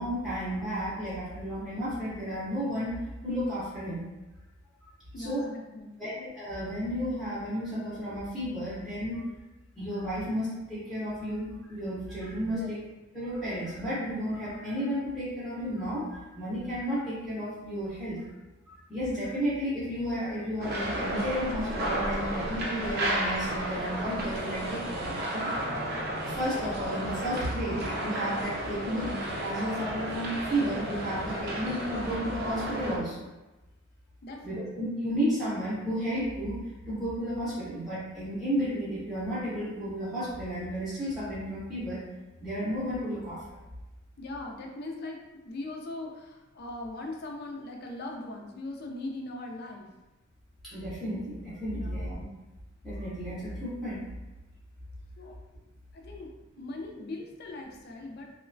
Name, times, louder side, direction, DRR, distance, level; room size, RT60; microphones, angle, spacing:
voice 1, 0.0-4.1 5.2-5.5 6.0-9.2 9.8-12.8 13.1-18.3 18.9-25.6 26.0-33.2 34.4-36.6 36.9-42.1 42.4-43.6 50.6-52.3 52.8-54.0, equal, ahead, -11 dB, 0.6 m, -33 dB
voice 2, 5.1-6.1 12.5-12.7 25.6-25.8 34.2-34.6 44.2-49.9 51.7-52.0 55.2-55.4 55.9-58.3, left 2 dB, 55° left, 1 dB, 0.4 m, -40 dB
sound 1, 20.6-33.0, right 1 dB, 50° right, 0.5 m, -33 dB
2.9 x 2.1 x 2.5 m, 1.1 s
head